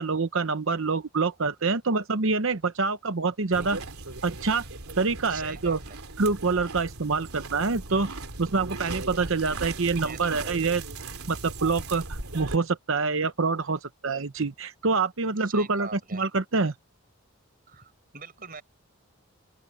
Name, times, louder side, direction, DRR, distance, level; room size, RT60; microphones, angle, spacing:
voice 1, 0.0-3.8 4.2-4.6 5.0-5.8 6.2-8.1 8.4-10.8 11.3-16.7, right 4 dB, 60° right, 0.8 m, -26 dB
sound 1, 3.5-12.6, right 3 dB, 85° right, 3.0 m, -38 dB
voice 2, 5.3-6.0 10.0-10.5 15.4-16.2 17.7-18.6, right 5 dB, 40° right, 5.9 m, -43 dB
open air
head